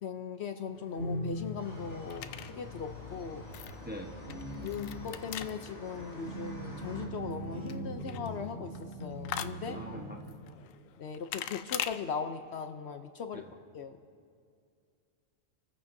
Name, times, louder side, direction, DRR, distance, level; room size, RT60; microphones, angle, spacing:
voice 1, 0.0-3.4 4.6-9.8 11.0-13.4 13.7-14.0, left 6 dB, 65° left, 7 dB, 0.8 m, -39 dB
sound 1, 0.6-1.8 2.8-3.2 3.6-10.0, right 1 dB, 70° right, 4.1 m, -40 dB
sound 2, 0.8-12.0, left 10 dB, 90° left, 1.0 m, -44 dB
sound 3, 1.6-7.1, left 1 dB, 35° left, 3.3 m, -46 dB
voice 2, 3.8-4.2 9.5-10.4 13.3-13.5, equal, 10° right, 1 dB, 0.9 m, -44 dB
27.5 x 14.5 x 2.6 m, 2.3 s
omnidirectional pair, 1.3 m